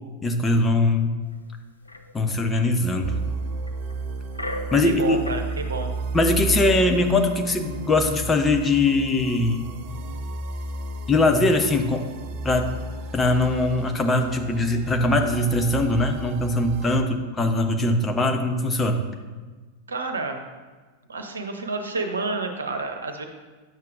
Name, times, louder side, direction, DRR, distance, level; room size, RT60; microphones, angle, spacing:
voice 1, 0.2-1.1 2.1-3.1 4.7-5.2 6.1-9.7 11.1-12.0 12.4-12.7 13.1-19.0, left 2 dB, 15° left, 4 dB, 0.8 m, -21 dB
sound 1, 1.3-1.4 1.8-3.2 3.7-5.6 5.9-6.0 6.5-7.0, left 2 dB, 85° left, 0.6 m, -38 dB
sound 2, 3.0-17.0, right 3 dB, 45° right, 0.6 m, -33 dB
voice 2, 4.8-5.9 19.9-20.4 21.1-23.2, right 3 dB, 70° right, 5 dB, 0.9 m, -29 dB
10.5 x 7.5 x 2.5 m, 1.3 s
figure-of-eight pair, 90°, 0 cm